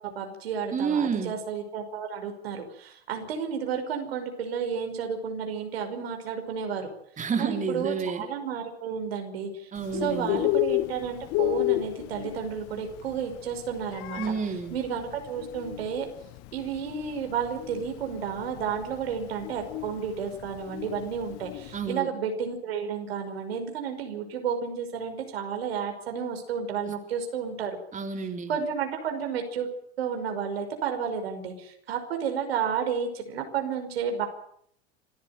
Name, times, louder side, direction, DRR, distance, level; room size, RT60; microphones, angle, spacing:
voice 1, 0.0-6.9 7.4-9.7 10.0-14.2 14.7-16.1 16.5-27.8 28.5-29.7 30.0-34.3, right 7 dB, 75° right, 5 dB, 5.6 m, -32 dB
voice 2, 0.7-1.3 7.2-8.2 9.7-10.4 14.2-14.7 21.7-22.1 27.9-28.5, right 6 dB, 25° right, 5 dB, 3.6 m, -29 dB
Bird, 9.8-21.9, left 20 dB, 50° left, 0.9 m, -32 dB
26.5 x 14.5 x 9.1 m, 0.68 s
hypercardioid pair, 90°, 31 cm